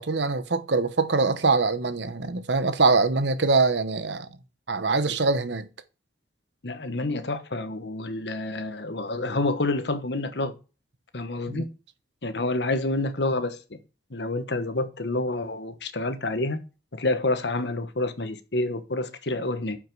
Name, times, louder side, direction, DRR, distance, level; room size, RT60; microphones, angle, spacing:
voice 1, 0.0-4.3 4.7-5.7 11.5-11.6, right 3 dB, 85° right, 1.0 m, -23 dB
voice 2, 6.6-10.5 11.1-11.7 12.2-13.8 14.1-16.6 16.9-19.8, left 2 dB, 75° left, 1.2 m, -28 dB
9.5 x 5.8 x 4.7 m
head